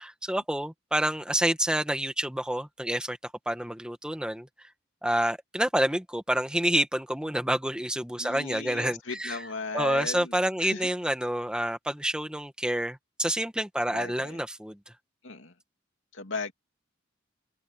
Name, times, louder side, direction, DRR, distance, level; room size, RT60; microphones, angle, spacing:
voice 1, 0.0-3.2 3.4-4.7 5.0-9.5 9.7-14.8, right 1 dB, 5° right, 1.6 m, -28 dB
voice 2, 8.2-10.9 13.9-14.4 15.2-15.5 16.1-16.5, left 4 dB, 75° left, 2.7 m, -36 dB
head